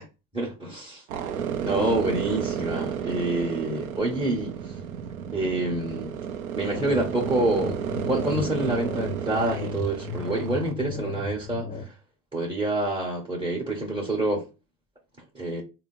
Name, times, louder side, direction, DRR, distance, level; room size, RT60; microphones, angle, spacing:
voice 1, 0.3-1.0 1.6-4.7 5.3-6.1 6.5-11.8 12.3-14.5 15.3-15.6, right 2 dB, 15° right, 1.4 m, -27 dB
sound 1, 1.1-10.7, right 8 dB, 85° right, 0.6 m, -32 dB
sound 2, 6.7-11.9, left 3 dB, 20° left, 0.6 m, -35 dB
3.7 x 2.1 x 3.9 m
hypercardioid pair, 75°, 41 cm